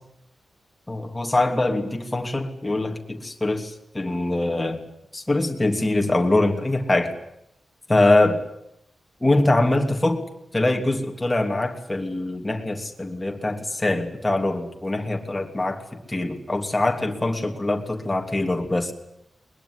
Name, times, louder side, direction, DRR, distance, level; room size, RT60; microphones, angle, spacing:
voice 1, 0.9-4.8 5.1-7.1 7.9-8.4 9.2-10.2 10.5-18.9, left 2 dB, 15° left, 3 dB, 3.0 m, -23 dB
22.0 x 21.5 x 9.9 m, 0.80 s
wide cardioid pair, 175°, 0 cm